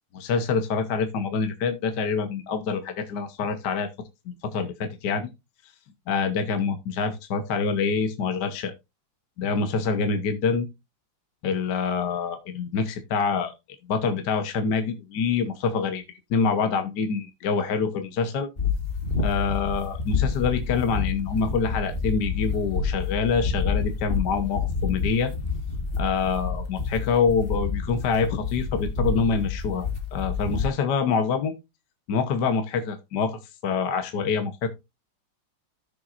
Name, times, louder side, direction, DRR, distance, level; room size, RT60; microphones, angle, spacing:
voice 1, 0.1-3.9 4.3-5.3 6.1-8.7 9.4-10.7 11.4-13.5 13.9-16.0 16.3-18.5 19.2-25.3 26.0-31.5 32.1-34.7, left 5 dB, 60° left, 8 dB, 1.5 m, -26 dB
sound 1, 18.6-30.7, left 5 dB, 30° left, 1.5 m, -28 dB
14.0 x 6.9 x 2.5 m, 0.24 s
omnidirectional pair, 2.4 m